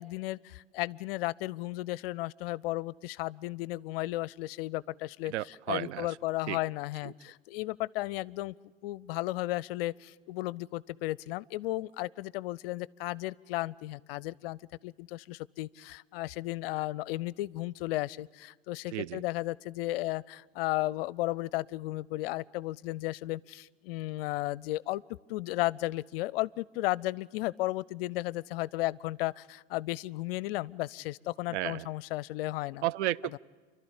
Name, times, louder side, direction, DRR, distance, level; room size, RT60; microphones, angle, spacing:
voice 1, 0.0-5.3 5.7-8.5 8.8-25.0 25.3-32.8 33.3-33.4, left 18 dB, 50° left, 24 dB, 0.5 m, -34 dB
voice 2, 5.3-6.2 6.5-6.6 7.0-7.1 18.9-19.2 31.5-31.9 32.8-33.4, right 14 dB, 65° right, 21 dB, 0.5 m, -33 dB
29.0 x 12.5 x 8.7 m, 1.5 s
figure-of-eight pair, 90°, 37 cm